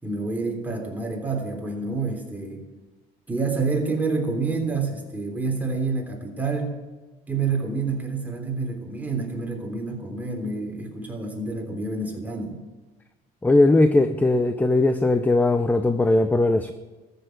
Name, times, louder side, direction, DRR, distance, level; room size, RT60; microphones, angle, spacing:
voice 1, 0.0-2.6 3.3-6.8 7.3-12.6, right 4 dB, 10° right, 0 dB, 3.3 m, -28 dB
voice 2, 13.4-16.7, left 2 dB, 10° left, 10 dB, 0.6 m, -19 dB
13.5 x 6.9 x 9.3 m, 1.2 s
cardioid pair, 110°, 17 cm